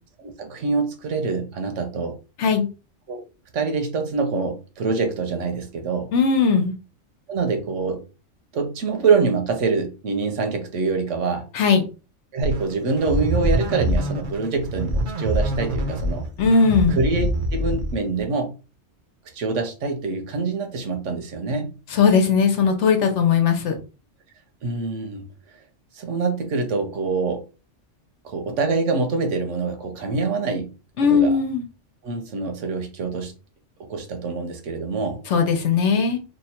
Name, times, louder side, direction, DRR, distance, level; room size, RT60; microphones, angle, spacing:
voice 1, 0.2-2.2 3.1-3.2 3.5-6.1 7.3-8.0 8.5-11.5 12.3-16.3 16.9-18.6 19.3-21.7 24.6-25.3 25.9-27.4 28.2-31.4 32.0-33.3 33.8-35.2, right 4 dB, 80° right, 1.2 m, -25 dB
voice 2, 6.1-6.7 11.5-11.8 16.4-17.0 21.9-23.7 31.0-31.6 35.3-36.2, left 5 dB, 75° left, 1.1 m, -18 dB
sound 1, 12.4-18.2, right 1 dB, 50° right, 0.7 m, -25 dB
3.1 x 2.3 x 4.3 m
omnidirectional pair, 1.2 m